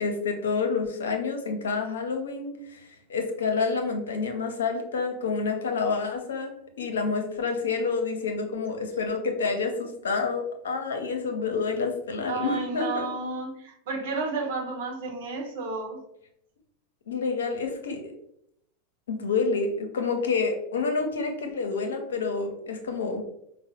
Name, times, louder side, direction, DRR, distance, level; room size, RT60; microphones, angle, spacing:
voice 1, 0.0-2.8 3.1-13.1 17.1-18.1 19.1-23.2, left 4 dB, 75° left, 4 dB, 0.6 m, -28 dB
voice 2, 12.3-16.0, right 3 dB, 65° right, 1 dB, 0.8 m, -32 dB
4.7 x 2.0 x 2.8 m, 0.75 s
hypercardioid pair, 90°, 0 cm